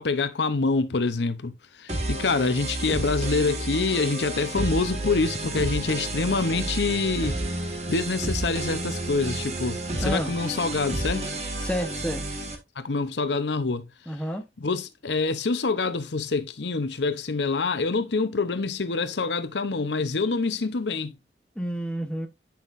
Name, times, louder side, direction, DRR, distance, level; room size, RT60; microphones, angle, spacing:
voice 1, 0.0-11.3 12.8-13.8 14.6-21.2, left 3 dB, 80° left, 0.8 m, -26 dB
sound 1, 1.9-12.5, right 2 dB, 35° right, 1.6 m, -31 dB
voice 2, 10.0-10.3 11.6-12.3 14.1-14.5 21.6-22.3, equal, 5° left, 0.9 m, -29 dB
9.2 x 5.9 x 2.6 m
head